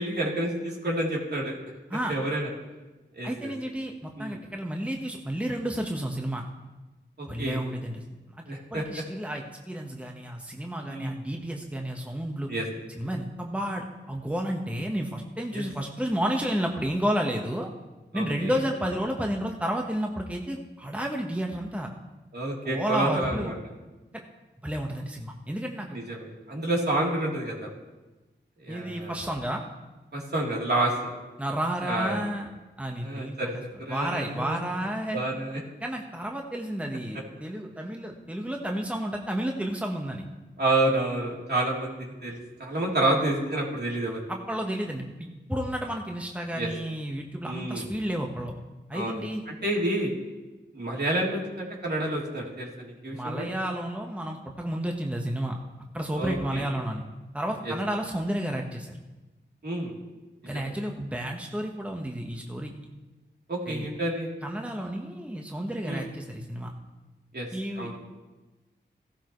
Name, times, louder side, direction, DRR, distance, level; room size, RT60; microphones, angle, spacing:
voice 1, 0.0-1.6 2.1-2.5 3.1-3.5 4.2-4.4 7.2-7.6 8.5-8.8 10.9-11.2 12.5-12.6 15.5-15.6 18.1-18.6 22.3-23.5 25.9-27.7 28.6-29.2 30.1-31.1 31.9-32.2 33.0-34.6 35.1-35.6 40.6-44.2 46.5-46.7 47.4-47.9 48.9-50.1 50.7-53.5 56.1-56.7 57.6-57.7 59.6-59.9 63.5-64.3 65.8-66.1 67.3-67.5 67.8-68.0, right 1 dB, 60° right, -3 dB, 3.5 m, -29 dB
voice 2, 3.2-6.4 7.3-8.0 8.3-8.4 8.7-12.5 12.9-17.7 18.1-21.9 22.6-23.5 24.6-26.0 28.7-29.6 31.4-32.5 32.8-33.6 33.9-35.2 35.8-40.3 44.3-48.5 48.9-49.4 53.1-55.6 55.9-57.0 57.3-59.0 60.4-62.7 63.7-63.9 64.4-66.7 67.5-68.0, right 1 dB, 5° right, 1 dB, 1.4 m, -31 dB
15.0 x 13.0 x 3.2 m, 1.2 s
cardioid pair, 40°, 19 cm